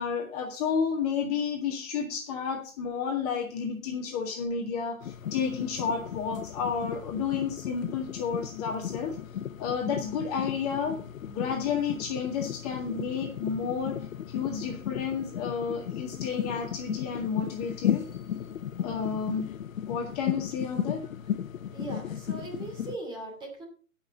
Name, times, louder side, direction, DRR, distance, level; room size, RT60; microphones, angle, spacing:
voice 1, 0.0-9.2 9.6-11.0 11.3-14.0 14.3-18.1 18.8-19.5 19.9-21.0, left 6 dB, 30° left, 1 dB, 1.8 m, -31 dB
sound 1, 5.0-23.0, left 10 dB, 75° left, 0.6 m, -35 dB
voice 2, 21.7-23.6, right 2 dB, 10° right, 1 dB, 2.5 m, -39 dB
15.5 x 5.9 x 5.2 m, 0.39 s
hypercardioid pair, 150°, 40 cm